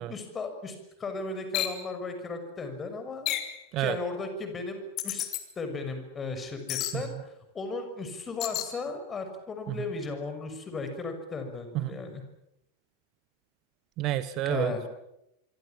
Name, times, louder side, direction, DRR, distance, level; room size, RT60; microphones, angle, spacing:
voice 1, 0.0-3.3 3.8-5.3 5.6-12.2 14.4-14.8, left 3 dB, 20° left, 7 dB, 6.3 m, -36 dB
sound 1, 1.5-1.8 3.3-3.6 5.0-5.4 6.7-7.0 8.4-8.7, left 13 dB, 40° left, 3.0 m, -31 dB
voice 2, 14.0-14.9, right 13 dB, 40° right, 15 dB, 1.3 m, -30 dB
26.5 x 24.5 x 7.4 m, 0.83 s
figure-of-eight pair, 90°, 0 cm